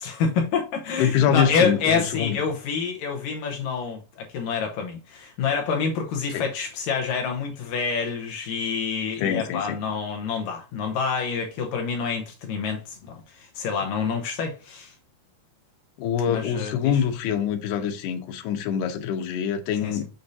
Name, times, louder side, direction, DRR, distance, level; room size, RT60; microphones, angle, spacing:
voice 1, 0.0-14.9 16.3-17.0 19.8-20.0, left 5 dB, 70° left, 2.3 m, -27 dB
voice 2, 1.0-2.4 6.3-6.5 9.2-9.8 16.0-20.0, left 8 dB, 90° left, 3.0 m, -25 dB
7.0 x 6.5 x 2.7 m
omnidirectional pair, 4.5 m